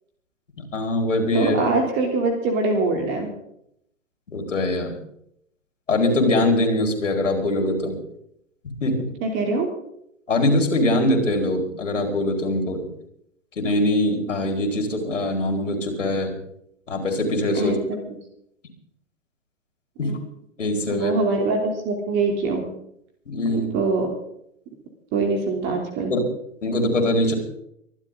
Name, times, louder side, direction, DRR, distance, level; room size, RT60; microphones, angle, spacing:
voice 1, 0.7-1.6 4.3-4.9 5.9-8.0 8.8-9.0 10.3-12.9 13.6-16.3 16.9-17.8 20.0-20.1 20.6-21.1 23.3-23.7 26.1-26.2 26.6-27.3, left 1 dB, 70° left, 3 dB, 4.8 m, -22 dB
voice 2, 1.3-3.3 9.2-9.7 17.5-17.8 20.0-20.1 20.9-22.7 23.5-24.1 25.1-26.1, right 3 dB, 30° right, 3 dB, 3.3 m, -23 dB
24.5 x 12.0 x 3.9 m, 0.73 s
figure-of-eight pair, 120°, 38 cm